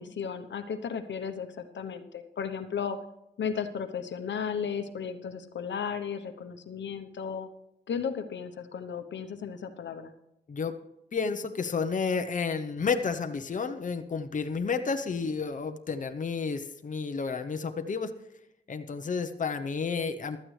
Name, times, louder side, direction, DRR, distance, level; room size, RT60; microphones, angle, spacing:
voice 1, 0.0-3.0 3.4-7.5 7.9-10.1, left 7 dB, 80° left, 8 dB, 1.0 m, -35 dB
voice 2, 11.1-18.1 18.7-20.4, left 5 dB, 45° left, 7 dB, 0.8 m, -31 dB
15.5 x 12.5 x 3.3 m, 0.83 s
wide cardioid pair, 90°, 19 cm